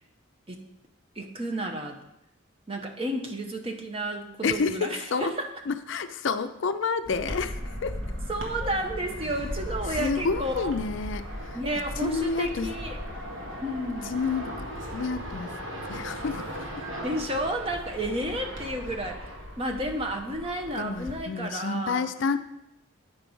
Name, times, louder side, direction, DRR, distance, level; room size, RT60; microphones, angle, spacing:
voice 1, 1.2-2.0 2.7-5.5 8.3-10.7 11.5-13.0 13.6-14.1 17.0-22.1, right 1 dB, 25° right, 3 dB, 0.8 m, -32 dB
voice 2, 4.4-5.3 5.7-8.0 9.9-11.6 12.0-12.7 14.1-14.6 14.9-15.5 15.9-16.7 20.8-22.4, left 4 dB, 60° left, 10 dB, 0.4 m, -29 dB
sound 1, 7.1-21.2, equal, 70° right, 1.6 m, -37 dB
9.3 x 4.6 x 5.4 m, 0.83 s
head